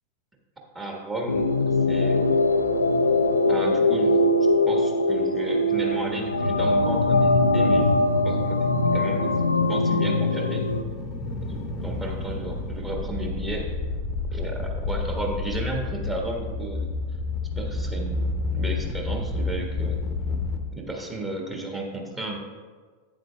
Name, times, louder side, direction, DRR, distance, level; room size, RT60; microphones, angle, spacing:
voice 1, 0.7-2.6 3.5-4.1 4.6-7.9 8.2-8.6 8.9-9.3 9.7-10.6 11.5-13.7 14.3-16.9 17.6-20.0 20.7-22.4, right 2 dB, 15° right, 0 dB, 1.5 m, -33 dB
sound 1, 1.3-10.8, left 2 dB, 80° left, 0.4 m, -21 dB
sound 2, 10.6-20.6, left 3 dB, 30° left, 0.8 m, -30 dB
11.5 x 8.6 x 2.3 m, 1.5 s
figure-of-eight pair, 90°, 0 cm